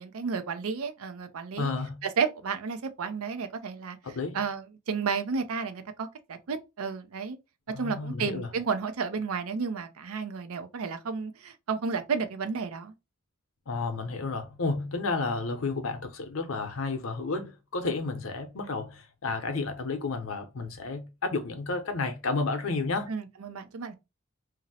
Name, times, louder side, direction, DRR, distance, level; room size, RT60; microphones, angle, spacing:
voice 1, 0.0-1.7 2.0-7.4 7.7-12.9 23.1-23.9, right 5 dB, 90° right, 0.5 m, -32 dB
voice 2, 1.6-2.0 4.0-4.4 7.7-8.5 13.7-23.1, left 3 dB, 75° left, 0.7 m, -31 dB
2.6 x 2.0 x 3.9 m
head